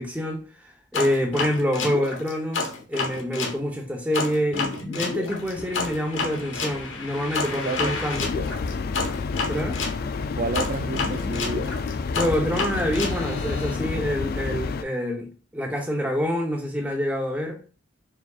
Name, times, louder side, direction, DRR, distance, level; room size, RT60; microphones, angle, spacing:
voice 1, 0.0-8.3 9.5-9.8 12.2-17.6, equal, 10° right, 0.8 m, -27 dB
sound 1, 0.9-3.6 4.1-10.0 10.5-13.7, left 4 dB, 80° left, 1.0 m, -30 dB
voice 2, 7.6-8.3 10.4-11.8, right 4 dB, 40° right, 0.4 m, -31 dB
sound 2, 8.1-14.8, left 4 dB, 50° left, 0.3 m, -29 dB
4.6 x 4.1 x 2.4 m
head